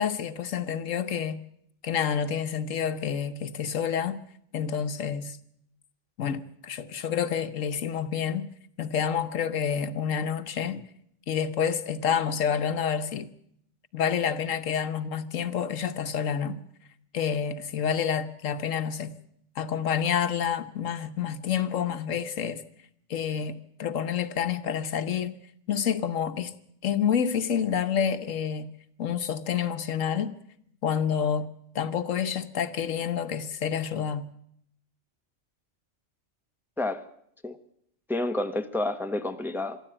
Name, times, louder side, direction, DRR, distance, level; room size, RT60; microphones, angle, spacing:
voice 1, 0.0-1.4 1.8-4.2 4.5-5.4 6.2-8.5 8.8-10.9 11.3-13.3 13.9-16.6 17.1-19.2 19.5-22.6 23.1-25.3 25.7-26.5 26.8-28.7 29.0-30.3 30.8-31.5 31.7-34.3, left 7 dB, 80° left, 1.4 m, -28 dB
voice 2, 38.1-39.8, left 2 dB, ahead, 1.0 m, -29 dB
23.0 x 13.5 x 8.9 m
omnidirectional pair, 1.3 m